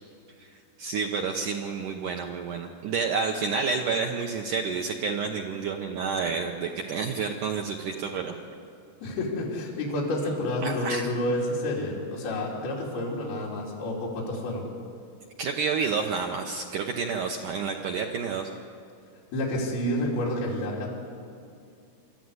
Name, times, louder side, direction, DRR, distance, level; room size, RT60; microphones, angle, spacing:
voice 1, 0.8-8.4 10.6-11.1 15.4-18.5, right 5 dB, 75° right, 2 dB, 1.9 m, -29 dB
voice 2, 9.0-14.7 19.3-20.9, left 1 dB, 65° left, -4 dB, 4.8 m, -29 dB
24.0 x 13.5 x 9.6 m, 2.4 s
omnidirectional pair, 5.0 m